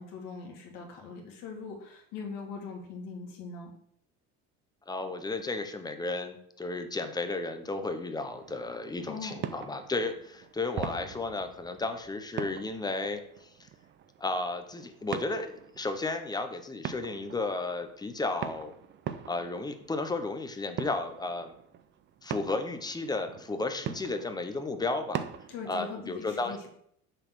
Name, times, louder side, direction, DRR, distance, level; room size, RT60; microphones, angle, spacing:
voice 1, 0.0-3.7 9.1-9.5 25.5-26.7, left 4 dB, 70° left, 1 dB, 2.2 m, -41 dB
voice 2, 4.9-13.5 14.2-18.7 19.3-21.5 22.2-25.2 25.7-26.6, left 3 dB, 10° left, 7 dB, 0.7 m, -33 dB
sound 1, 8.3-25.8, right 9 dB, 35° right, 0.5 m, -43 dB
6.6 x 4.1 x 6.0 m, 0.69 s
cardioid pair, 125°, 34 cm